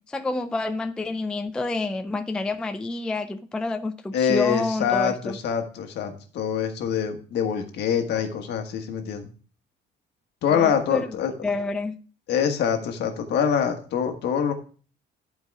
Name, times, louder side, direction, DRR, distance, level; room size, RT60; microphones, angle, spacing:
voice 1, 0.1-5.4 10.5-11.1 11.4-11.9, left 3 dB, 5° left, 0.3 m, -28 dB
voice 2, 4.1-9.3 10.4-11.3 12.3-14.5, left 8 dB, 65° left, 1.5 m, -25 dB
11.0 x 4.8 x 4.7 m
cardioid pair, 170°, 19 cm